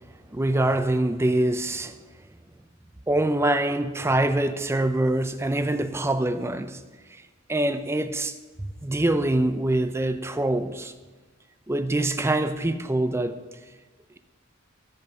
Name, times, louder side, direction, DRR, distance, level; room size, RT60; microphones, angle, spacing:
voice 1, 0.3-1.9 3.1-6.8 7.5-10.9 11.7-13.4, right 1 dB, 15° right, 0.5 m, -24 dB
13.5 x 5.3 x 5.3 m
head